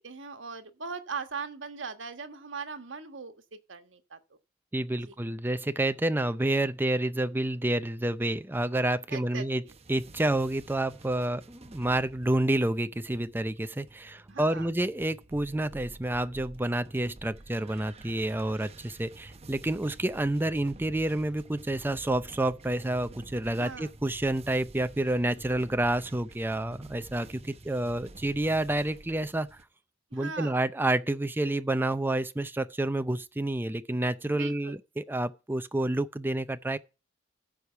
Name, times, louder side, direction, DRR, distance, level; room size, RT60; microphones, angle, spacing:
voice 1, 0.0-4.2 5.1-5.2 9.1-9.7 14.3-14.7 23.6-23.9 30.1-30.5 34.3-34.7, right 5 dB, 75° right, 1.4 m, -40 dB
voice 2, 4.7-9.6 9.9-29.5 30.1-36.8, right 1 dB, 10° right, 0.5 m, -29 dB
sound 1, 9.7-29.6, right 2 dB, 35° right, 0.9 m, -50 dB
14.0 x 4.9 x 5.7 m
head